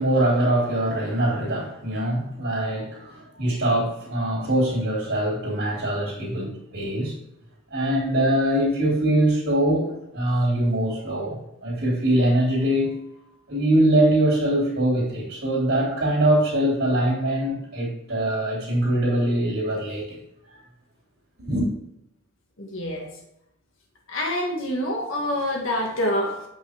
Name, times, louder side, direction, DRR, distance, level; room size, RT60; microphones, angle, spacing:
voice 1, 0.0-7.2 7.7-12.9 13.5-20.2 21.4-21.7, right 1 dB, 55° right, -10 dB, 3.0 m, -23 dB
voice 2, 22.6-23.1 24.1-26.4, left 1 dB, 60° left, 0 dB, 1.6 m, -26 dB
8.3 x 5.6 x 3.5 m, 0.81 s
head